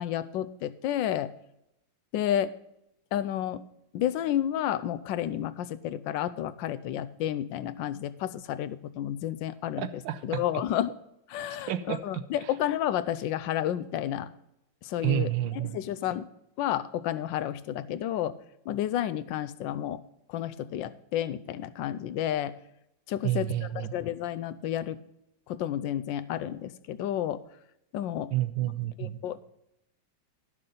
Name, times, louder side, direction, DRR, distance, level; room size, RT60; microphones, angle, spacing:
voice 1, 0.0-1.3 2.1-2.5 3.1-3.6 3.9-9.9 10.2-10.9 11.3-14.3 14.8-16.3 16.6-18.4 18.7-20.0 20.3-22.6 23.1-25.0 25.5-27.5 27.9-28.3 29.0-29.4, left 11 dB, 75° left, 13 dB, 1.3 m, -31 dB
voice 2, 9.8-10.4 11.7-12.0 15.0-15.8 23.2-23.9 28.3-29.2, right 13 dB, 80° right, 9 dB, 1.4 m, -29 dB
12.0 x 6.6 x 5.4 m, 0.83 s
omnidirectional pair, 2.1 m